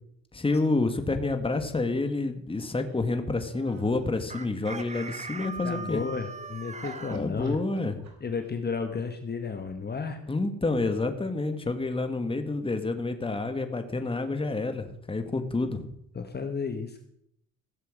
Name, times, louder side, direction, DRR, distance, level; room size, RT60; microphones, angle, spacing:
voice 1, 0.3-6.0 7.1-8.0 10.3-15.9, left 3 dB, 20° left, 7 dB, 1.9 m, -28 dB
sound 1, 2.8-4.2 6.2-6.5 6.8-8.4, right 4 dB, 60° right, 4.3 m, -48 dB
Chicken rooster, 4.3-7.2, right 4 dB, 25° right, 1.2 m, -39 dB
voice 2, 5.6-7.6 8.2-10.2 16.1-17.0, left 5 dB, 35° left, 6 dB, 1.7 m, -33 dB
16.0 x 7.5 x 7.4 m, 0.73 s
cardioid pair, 90°, 30 cm